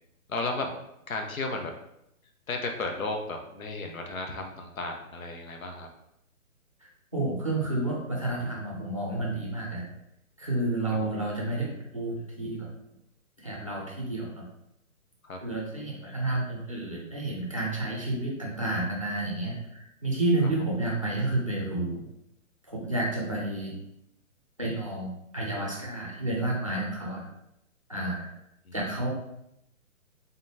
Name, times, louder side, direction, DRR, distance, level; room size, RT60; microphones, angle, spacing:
voice 1, 0.3-0.7 1.1-1.7 2.5-5.9 10.9-11.1 15.2-15.4 28.6-28.7, left 2 dB, 75° left, 4 dB, 0.9 m, -34 dB
voice 2, 6.8-9.8 10.4-12.7 13.4-14.4 15.4-22.0 22.7-23.7 24.6-27.3 27.9-28.3 28.7-29.1, right 2 dB, 25° right, -3 dB, 0.5 m, -30 dB
3.8 x 3.7 x 2.7 m, 0.82 s
hypercardioid pair, 180°, 42 cm